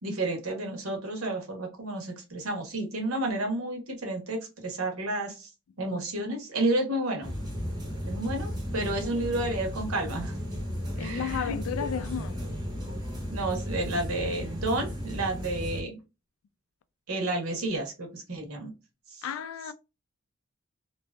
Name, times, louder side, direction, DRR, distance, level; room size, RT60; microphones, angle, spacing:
voice 1, 0.0-5.5 5.8-7.3 8.1-10.4 11.0-11.5 13.3-16.0 17.1-18.7 19.1-19.2, right 2 dB, 75° right, 0.9 m, -31 dB
sound 1, 7.2-15.8, equal, 20° right, 0.7 m, -34 dB
voice 2, 11.0-12.4 19.2-19.7, left 8 dB, 70° left, 0.3 m, -33 dB
2.6 x 2.3 x 2.2 m
head